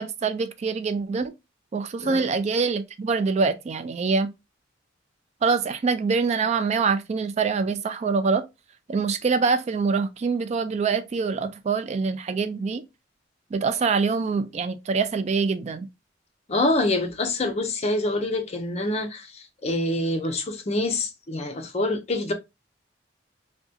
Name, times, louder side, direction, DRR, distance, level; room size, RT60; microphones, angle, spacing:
voice 1, 0.0-1.3 1.7-4.3 5.4-8.4 8.9-12.8 13.5-15.9, right 4 dB, 35° right, 0.3 m, -25 dB
voice 2, 16.5-22.3, left 2 dB, 35° left, 0.6 m, -26 dB
3.6 x 2.2 x 2.6 m
head